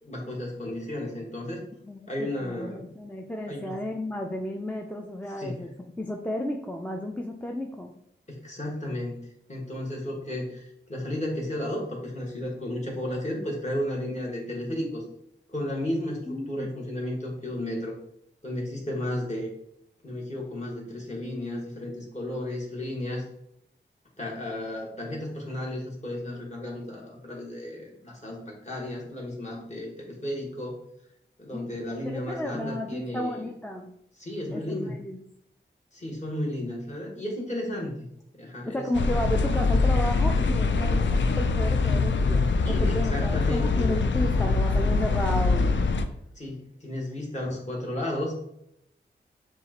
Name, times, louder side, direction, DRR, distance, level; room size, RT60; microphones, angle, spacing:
voice 1, 0.0-1.6 2.1-2.9 3.5-3.8 5.4-5.6 8.3-9.2 9.5-15.0 15.5-18.0 18.4-19.5 20.0-23.2 24.2-30.8 31.4-33.5 34.2-35.0 35.9-38.0 38.3-38.9 42.6-43.9 46.3-48.4, left 1 dB, 35° left, -2 dB, 1.5 m, -33 dB
voice 2, 1.8-5.7 6.0-7.9 16.3-16.7 31.5-31.7 32.0-33.9 34.5-35.2 38.7-45.8, left 1 dB, 5° left, 1 dB, 0.4 m, -33 dB
sound 1, 38.9-46.0, left 3 dB, 70° left, 0.4 m, -23 dB
7.1 x 2.4 x 2.9 m, 0.74 s
wide cardioid pair, 90°, 20 cm